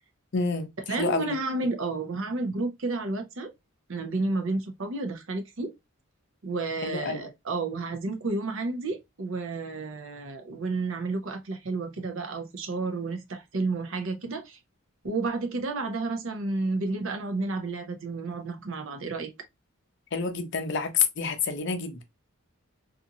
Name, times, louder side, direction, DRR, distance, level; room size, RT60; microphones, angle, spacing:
voice 1, 0.3-1.3 6.8-7.2 20.1-22.0, left 5 dB, 50° left, 0.5 m, -28 dB
voice 2, 0.9-3.5 3.9-5.7 6.4-14.6 15.0-19.3, right 3 dB, 60° right, 0.6 m, -31 dB
2.6 x 2.4 x 2.6 m
head